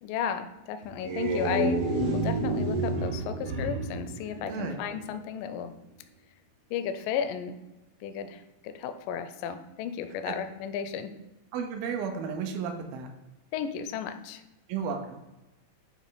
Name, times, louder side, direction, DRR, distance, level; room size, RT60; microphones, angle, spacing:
voice 1, 0.0-1.8 2.1-5.7 6.7-7.6 8.0-11.1 13.5-14.4, left 7 dB, 80° left, 10 dB, 1.9 m, -34 dB
sound 1, 0.8-5.1, right 2 dB, 65° right, 1.1 m, -29 dB
voice 2, 11.5-13.1 14.7-15.2, right 6 dB, 80° right, 4 dB, 2.4 m, -33 dB
8.4 x 3.1 x 3.8 m, 1.0 s
omnidirectional pair, 4.2 m